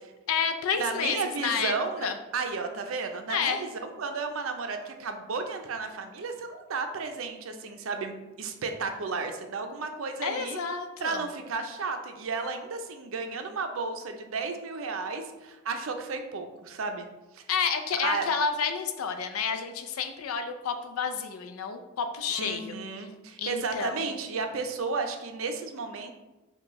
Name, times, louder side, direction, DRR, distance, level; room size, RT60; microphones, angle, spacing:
voice 1, 0.3-1.7 2.0-2.2 3.3-3.6 10.2-11.2 17.5-22.7 23.4-24.1, left 6 dB, 85° left, 7 dB, 0.5 m, -30 dB
voice 2, 0.8-10.6 11.0-17.1 17.3-17.4 18.0-18.2 22.3-26.1, right 4 dB, 70° right, 6 dB, 0.5 m, -33 dB
6.0 x 2.3 x 3.0 m, 1.1 s
head